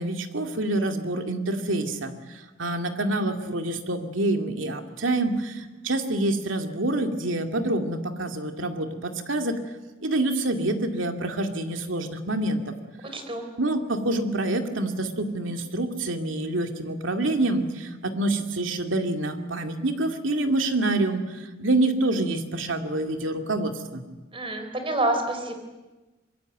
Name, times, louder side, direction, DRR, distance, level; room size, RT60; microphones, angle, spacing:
voice 1, 0.0-9.6 10.0-12.6 13.6-24.0, right 2 dB, 70° right, 5 dB, 2.5 m, -27 dB
voice 2, 13.1-13.5 24.3-25.5, right 2 dB, 25° right, 6 dB, 4.1 m, -27 dB
24.5 x 22.5 x 9.3 m, 1.2 s
head